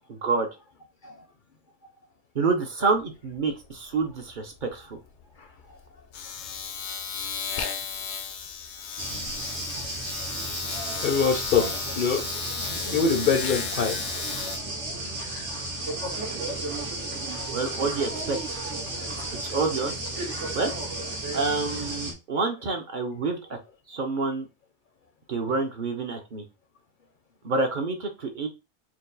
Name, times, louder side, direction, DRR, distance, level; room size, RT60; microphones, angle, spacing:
voice 1, 0.1-0.5 2.3-5.0 17.5-18.4 19.5-19.9 20.5-20.7 21.3-23.6 23.9-24.5 25.3-26.4 27.4-28.5, right 4 dB, 50° right, 0.8 m, -27 dB
Domestic sounds home sounds, 2.8-3.0 3.3-14.6, left 7 dB, 75° left, 0.9 m, -35 dB
sound 1, 9.0-22.1, right 2 dB, 85° right, 1.7 m, -33 dB
voice 2, 11.0-11.7 12.0-12.2 12.9-14.0, left 5 dB, 55° left, 0.7 m, -23 dB
4.5 x 2.3 x 3.9 m
omnidirectional pair, 1.2 m